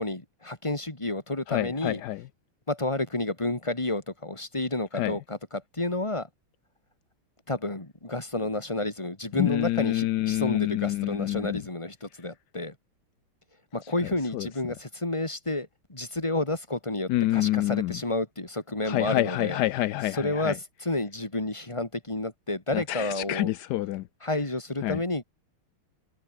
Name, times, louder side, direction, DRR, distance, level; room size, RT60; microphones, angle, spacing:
voice 1, 0.0-2.0 2.7-6.3 7.5-12.7 13.7-19.6 20.1-23.5 24.2-25.2, left 2 dB, 15° left, 3.0 m, -30 dB
voice 2, 1.5-2.2 4.9-5.1 9.4-11.6 14.3-14.5 17.1-18.0 18.8-20.6 22.7-24.1 24.8-25.0, left 15 dB, 80° left, 0.9 m, -27 dB
omnidirectional pair, 2.3 m